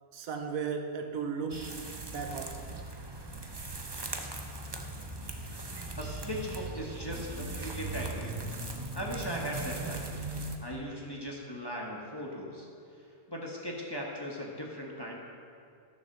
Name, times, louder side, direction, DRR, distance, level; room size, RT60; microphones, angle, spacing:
voice 1, 0.1-1.7 2.1-2.7, right 5 dB, 70° right, 5 dB, 1.2 m, -35 dB
sound 1, 1.5-10.6, right 2 dB, 25° right, 0.6 m, -39 dB
voice 2, 6.0-8.4 8.9-10.3 10.6-12.7 13.0-15.2, equal, 15° left, -2 dB, 1.3 m, -38 dB
12.0 x 7.1 x 6.6 m, 2.4 s
omnidirectional pair, 1.5 m